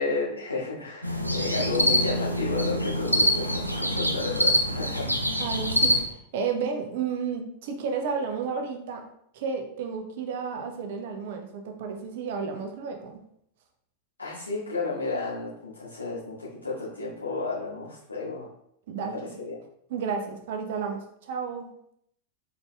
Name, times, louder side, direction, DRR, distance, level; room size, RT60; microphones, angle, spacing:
voice 1, 0.0-5.1 14.2-18.5 18.9-19.1 19.4-19.6, left 3 dB, 80° left, -7 dB, 1.6 m, -32 dB
sound 1, 1.0-6.0, equal, 90° right, 0.4 m, -25 dB
voice 2, 5.4-9.0 9.3-13.2 18.9-19.4 19.9-21.7, right 5 dB, 55° right, 4 dB, 0.7 m, -32 dB
4.5 x 4.0 x 2.3 m, 0.72 s
figure-of-eight pair, 90°, 0 cm